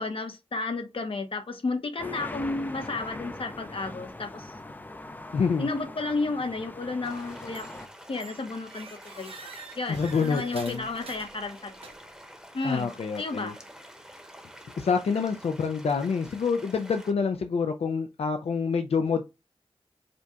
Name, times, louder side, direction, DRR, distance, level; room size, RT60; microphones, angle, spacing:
voice 1, 0.0-4.5 5.6-7.8 8.1-8.9 9.2-12.0 12.5-12.9 13.1-13.6, left 3 dB, 60° left, 0.8 m, -32 dB
sound 1, 2.0-7.9, left 2 dB, 15° left, 0.5 m, -41 dB
voice 2, 5.3-5.7 9.9-10.9 12.6-13.5 14.8-19.2, left 5 dB, 75° left, 0.4 m, -27 dB
sound 2, 7.0-17.1, equal, 5° right, 0.9 m, -48 dB
sound 3, 7.5-7.9 8.2-12.2, right 4 dB, 65° right, 0.8 m, -47 dB
5.0 x 2.3 x 2.8 m
wide cardioid pair, 90°, 11 cm